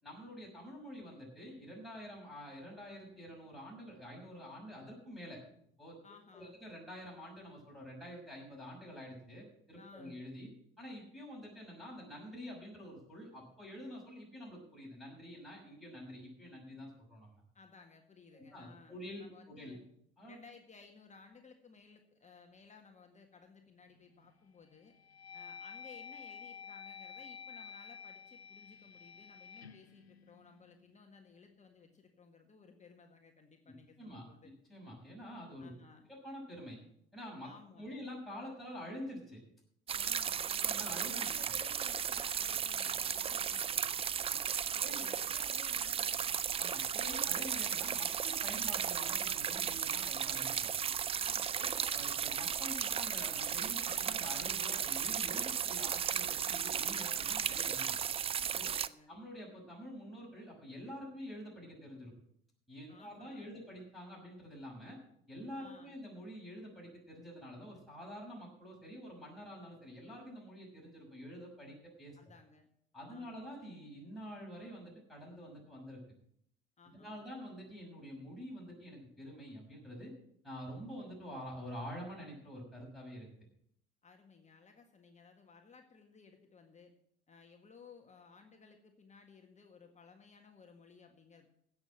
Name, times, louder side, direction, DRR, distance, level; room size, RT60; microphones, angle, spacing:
voice 1, 0.0-5.4 5.8-6.0 6.3-10.5 10.8-17.4 18.3-19.8 20.2-20.3 33.7-34.2 34.7-35.7 36.1-36.8 37.1-37.5 37.8-39.4 40.6-41.3 44.8-45.1 46.6-50.7 51.5-58.0 58.5-58.8 59.1-62.1 62.7-65.0 65.3-72.2 72.9-76.0 76.9-80.1 80.4-83.3, equal, ahead, -4 dB, 6.2 m, -47 dB
voice 2, 6.0-6.6 9.8-10.2 17.5-19.8 20.2-24.9 25.3-34.5 35.6-36.1 37.4-38.0 39.9-44.5 44.8-46.4 51.2-51.7 58.5-59.2 62.9-63.6 65.6-66.0 72.2-72.7 73.1-73.4 76.8-77.3 84.0-86.9 87.3-91.5, left 4 dB, 25° left, 3 dB, 1.8 m, -58 dB
sound 1, 23.9-24.3 24.8-31.0, left 7 dB, 90° left, 0.6 m, -51 dB
sound 2, 39.9-58.9, right 8 dB, 20° right, 0.4 m, -35 dB
16.0 x 6.4 x 7.4 m, 0.70 s
figure-of-eight pair, 65°, 30 cm